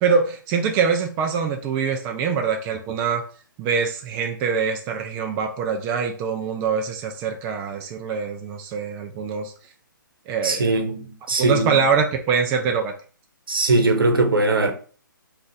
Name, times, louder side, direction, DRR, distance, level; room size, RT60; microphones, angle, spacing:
voice 1, 0.0-3.2 3.6-9.5 10.3-10.7 11.4-12.9, right 6 dB, 20° right, 0.3 m, -24 dB
voice 2, 10.4-11.8 13.5-14.7, right 2 dB, 85° right, 0.8 m, -20 dB
2.5 x 2.4 x 3.9 m
hypercardioid pair, 140°, 11 cm